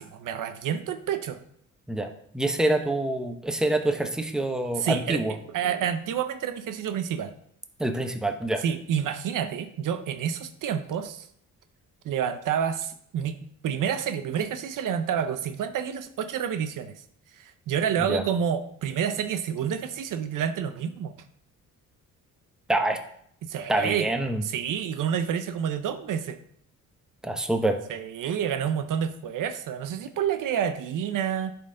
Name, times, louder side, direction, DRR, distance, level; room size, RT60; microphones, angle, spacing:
voice 1, 0.0-1.4 4.8-5.2 5.5-7.3 8.6-11.3 12.0-13.4 13.6-17.0 17.3-21.1 23.4-24.1 24.4-26.4 27.9-31.5, right 8 dB, 75° right, 10 dB, 0.7 m, -29 dB
voice 2, 1.9-5.3 7.8-8.6 18.1-18.2 22.7-23.0 23.7-24.4 27.2-27.8, right 1 dB, ahead, 5 dB, 0.8 m, -26 dB
11.0 x 4.4 x 3.8 m, 0.68 s
cardioid pair, 95°, 32 cm